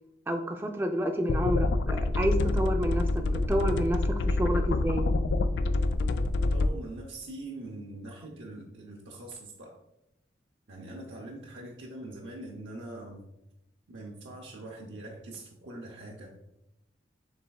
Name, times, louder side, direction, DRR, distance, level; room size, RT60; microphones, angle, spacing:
voice 1, 0.3-5.0, right 1 dB, 10° right, 3 dB, 0.4 m, -29 dB
sound 1, 1.3-6.7, left 2 dB, 75° left, 0.3 m, -27 dB
voice 2, 6.5-9.8 10.7-13.3 13.9-16.4, right 2 dB, 90° right, -1 dB, 0.7 m, -43 dB
6.7 x 3.4 x 2.3 m, 0.86 s
head